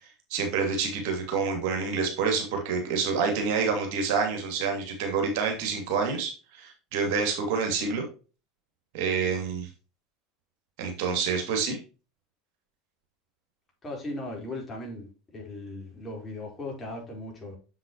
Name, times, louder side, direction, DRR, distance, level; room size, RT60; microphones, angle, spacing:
voice 1, 0.3-8.0 8.9-9.7 10.8-11.8, right 5 dB, 55° right, 2.6 m, -28 dB
voice 2, 13.8-17.6, left 2 dB, 20° left, 4.1 m, -38 dB
7.6 x 7.3 x 3.0 m
figure-of-eight pair, 75°, 0 cm